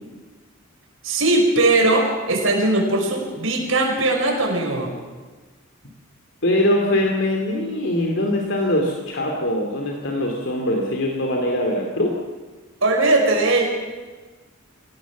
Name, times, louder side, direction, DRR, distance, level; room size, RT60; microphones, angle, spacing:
voice 1, 1.0-4.9 12.8-13.7, right 2 dB, 75° right, 1 dB, 5.4 m, -19 dB
voice 2, 6.4-12.1, left 1 dB, 60° left, 1 dB, 2.8 m, -22 dB
25.0 x 18.0 x 7.3 m, 1.3 s
head